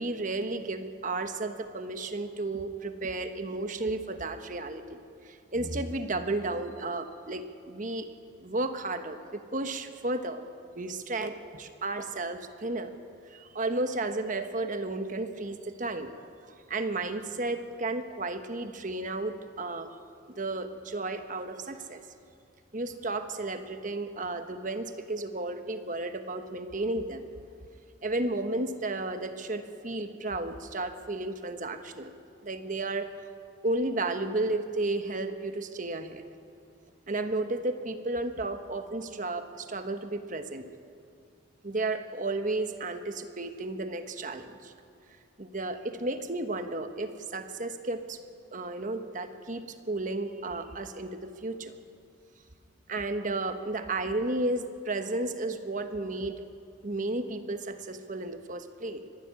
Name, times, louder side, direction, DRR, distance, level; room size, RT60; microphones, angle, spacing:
voice 1, 0.0-8.1 8.4-10.4 10.7-12.9 13.3-19.9 20.3-22.0 22.7-27.2 28.0-32.1 32.4-33.1 33.6-36.2 37.1-40.7 41.6-44.7 45.4-48.2 48.5-51.8 52.9-56.4 56.8-59.0, right 2 dB, 40° right, 8 dB, 1.2 m, -33 dB
24.5 x 12.0 x 9.7 m, 2.4 s
head